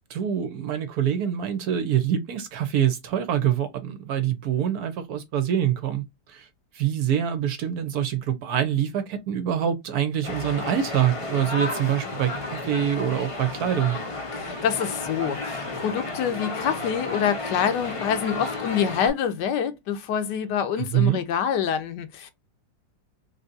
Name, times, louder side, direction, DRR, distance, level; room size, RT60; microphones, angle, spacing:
voice 1, 0.0-6.0 6.3-6.5 6.7-14.0 20.9-21.2, right 10 dB, 70° right, 1.1 m, -25 dB
sound 1, 10.2-19.1, left 2 dB, 35° left, 0.5 m, -32 dB
voice 2, 14.3-22.3, left 8 dB, 75° left, 1.2 m, -26 dB
3.6 x 2.7 x 2.5 m
omnidirectional pair, 1.9 m